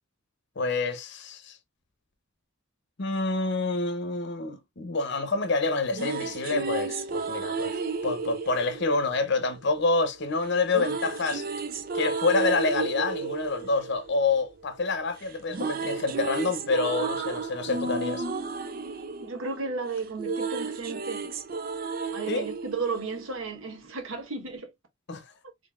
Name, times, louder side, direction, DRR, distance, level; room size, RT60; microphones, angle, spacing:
voice 1, 0.6-1.6 3.0-11.4 11.9-18.2 22.3-22.5 25.1-25.2, left 3 dB, 60° left, 0.8 m, -27 dB
sound 1, 5.7-9.8 10.7-14.9 15.2-23.7, right 4 dB, 45° right, 0.5 m, -33 dB
voice 2, 19.2-21.3 22.1-24.7, right 4 dB, 80° right, 1.3 m, -34 dB
3.8 x 3.3 x 2.4 m
head